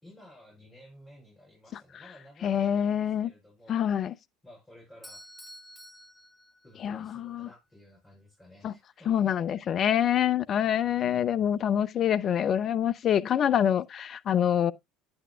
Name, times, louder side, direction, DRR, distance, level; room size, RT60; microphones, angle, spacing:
voice 1, 0.0-3.8 4.4-5.3 6.6-9.6 10.8-11.5, left 1 dB, 15° left, 5.8 m, -54 dB
voice 2, 2.4-3.3 3.7-4.1 6.8-7.5 8.6-8.7 9.1-14.7, left 9 dB, 35° left, 0.5 m, -26 dB
Bell / Doorbell, 5.0-7.1, equal, 5° right, 1.6 m, -50 dB
10.0 x 8.8 x 2.3 m
figure-of-eight pair, 65°, 0 cm